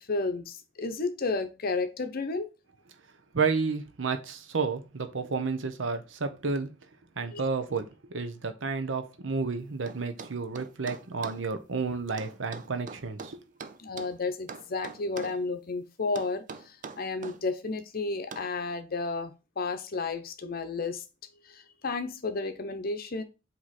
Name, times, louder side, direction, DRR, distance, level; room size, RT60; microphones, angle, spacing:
voice 1, 0.0-2.5 7.3-7.4 13.8-21.0 21.5-23.2, left 3 dB, 50° left, 0.8 m, -32 dB
voice 2, 3.3-6.7 7.2-13.4, right 4 dB, 80° right, 0.8 m, -31 dB
sound 1, 9.9-11.4 12.2-14.2 14.5-15.4 16.1-17.4 18.3-18.5, right 5 dB, 45° right, 0.5 m, -42 dB
7.6 x 3.0 x 4.2 m
head